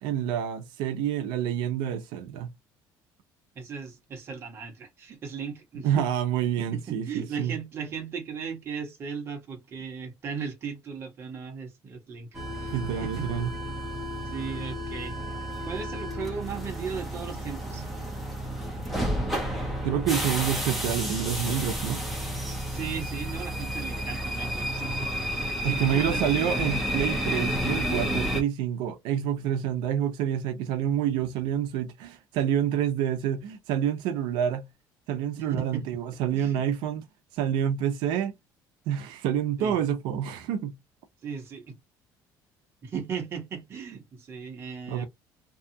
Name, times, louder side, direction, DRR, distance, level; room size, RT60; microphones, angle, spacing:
voice 1, 0.0-2.5 5.8-7.5 12.7-13.5 17.7-17.9 19.8-22.0 25.6-34.6 35.1-37.0 37.3-38.3 38.9-40.7 44.9-45.0, right 9 dB, 80° right, 0.6 m, -28 dB
voice 2, 3.5-6.1 6.7-12.7 13.0-13.3 14.3-15.1 15.6-17.8 22.7-26.4 35.4-35.8 36.3-36.6 39.6-39.7 41.2-41.8 42.8-45.0, right 6 dB, 30° right, 0.9 m, -37 dB
sound 1, 12.3-28.4, equal, ahead, 0.8 m, -31 dB
2.7 x 2.3 x 2.6 m
cardioid pair, 170°, 8 cm